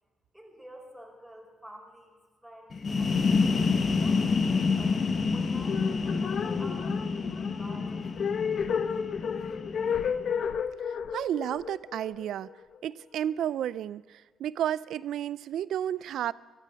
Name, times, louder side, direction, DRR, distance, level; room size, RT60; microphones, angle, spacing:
voice 1, 0.3-3.5 4.0-8.8, equal, ahead, 0 dB, 4.6 m, -50 dB
sound 1, 2.7-10.3, left 4 dB, 40° left, 1.2 m, -28 dB
Ghost child crying, 5.6-12.8, left 7 dB, 60° left, 0.8 m, -32 dB
voice 2, 10.9-12.5 12.8-16.3, right 10 dB, 75° right, 20 dB, 0.4 m, -32 dB
16.0 x 12.5 x 6.9 m, 1.4 s
cardioid pair, 90°, 0 cm